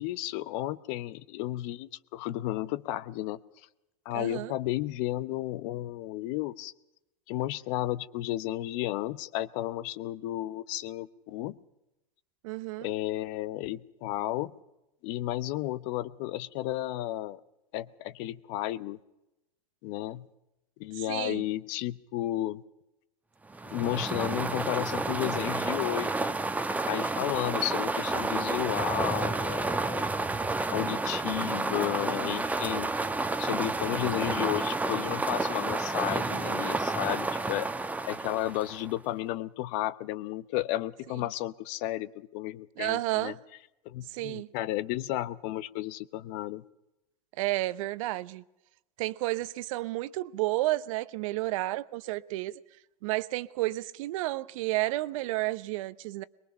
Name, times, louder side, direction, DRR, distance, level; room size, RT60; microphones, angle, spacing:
voice 1, 0.0-3.4 4.0-6.7 7.3-11.6 12.8-14.5 15.0-17.4 17.7-19.0 19.8-20.3 20.8-22.6 23.6-26.3 26.9-30.1 30.7-32.9 33.4-37.7 38.1-43.3 43.8-46.6, left 15 dB, 55° left, 0.9 m, -33 dB
voice 2, 4.1-4.5 12.4-12.9 21.1-21.4 42.8-43.4 44.1-44.5 47.4-48.4 49.0-52.5 53.0-56.2, right 18 dB, 60° right, 0.8 m, -31 dB
sound 1, 23.5-39.0, right 3 dB, 10° right, 1.0 m, -30 dB
23.0 x 21.5 x 5.7 m
hypercardioid pair, 95°, 19 cm